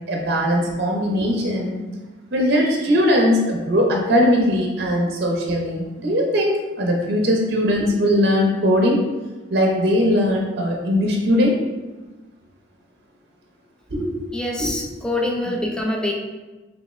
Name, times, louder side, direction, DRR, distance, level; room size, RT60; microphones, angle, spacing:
voice 1, 0.1-1.8 2.3-9.0 9.5-11.5 13.9-14.1 14.6-14.7 15.5-15.6, equal, 55° right, 0 dB, 0.7 m, -20 dB
voice 2, 14.3-16.1, left 1 dB, 5° left, 0 dB, 0.4 m, -25 dB
3.5 x 3.1 x 3.1 m, 1.2 s
head